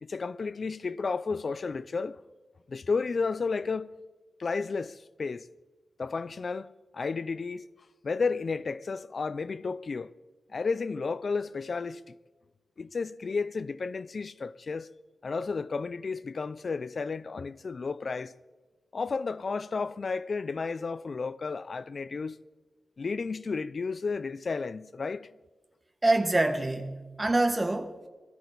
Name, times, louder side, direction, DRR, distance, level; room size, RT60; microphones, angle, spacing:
voice 1, 0.0-2.2 2.7-3.9 4.4-5.5 6.0-7.6 8.0-10.1 10.5-12.0 12.8-14.9 15.2-18.3 18.9-22.4 23.0-25.3, left 4 dB, 50° left, 0.4 m, -32 dB
voice 2, 26.0-28.1, right 2 dB, 20° right, 1.2 m, -26 dB
21.5 x 13.5 x 4.0 m
wide cardioid pair, 175°, 0 cm